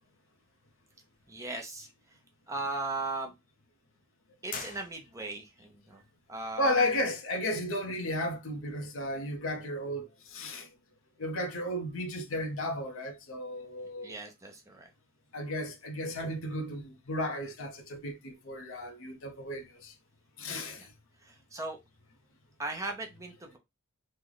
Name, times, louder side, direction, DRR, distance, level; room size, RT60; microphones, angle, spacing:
voice 1, 1.3-1.9 2.5-3.3 4.4-6.0 6.3-6.8 14.0-14.9 20.8-20.9 21.2-21.8 22.6-23.6, right 2 dB, 15° right, 0.6 m, -38 dB
sound 1, 4.5-5.5, left 5 dB, 40° left, 0.5 m, -42 dB
voice 2, 6.6-10.7 11.2-14.1 15.3-19.9 20.4-20.8, left 1 dB, 70° left, 0.8 m, -34 dB
3.2 x 2.2 x 3.8 m
head